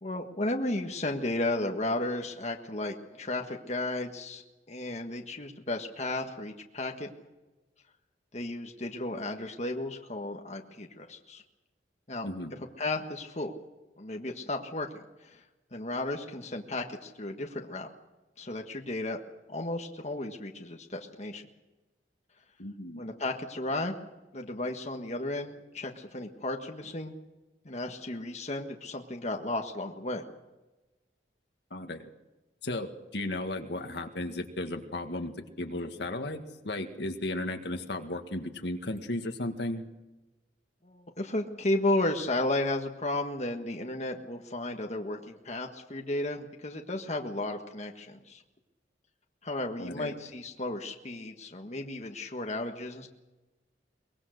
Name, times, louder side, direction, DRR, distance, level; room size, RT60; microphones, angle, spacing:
voice 1, 0.0-4.4 4.7-7.1 8.3-11.4 12.1-12.3 12.8-13.5 14.0-15.4 15.7-17.9 18.4-19.2 19.5-21.4 23.0-24.0 24.3-27.1 27.6-30.2 40.8-48.4 49.4-53.1, left 2 dB, 40° left, 3 dB, 1.5 m, -34 dB
voice 2, 22.6-23.0 31.7-32.1 32.6-39.8 49.8-50.1, left 1 dB, 65° left, 5 dB, 1.9 m, -35 dB
23.0 x 21.5 x 6.5 m, 1.1 s
head